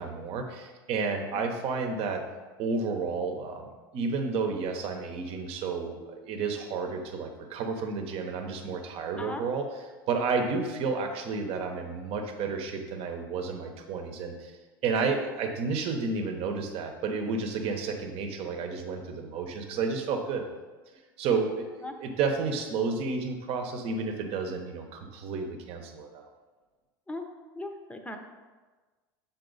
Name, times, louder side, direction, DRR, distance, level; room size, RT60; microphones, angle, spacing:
voice 1, 0.0-2.2 2.6-9.7 10.1-20.4 20.9-26.2, right 4 dB, 55° right, 4 dB, 1.0 m, -31 dB
voice 2, 27.5-28.2, left 2 dB, 10° left, 5 dB, 0.8 m, -38 dB
6.8 x 4.2 x 4.0 m, 1.3 s
hypercardioid pair, 90°, 12 cm